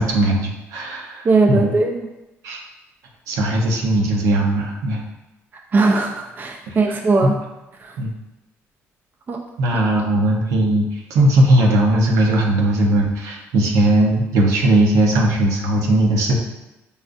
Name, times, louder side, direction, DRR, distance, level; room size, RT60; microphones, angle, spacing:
voice 1, 0.0-1.7 2.4-2.6 3.3-5.0 7.2-7.3 8.0-8.1 9.6-16.4, right 1 dB, 80° right, 0 dB, 0.7 m, -18 dB
voice 2, 1.2-2.1 5.7-7.4 7.8-7.9 9.3-9.4, right 3 dB, 35° right, 3 dB, 0.4 m, -19 dB
5.1 x 2.4 x 2.5 m, 0.98 s
cardioid pair, 105°, 5 cm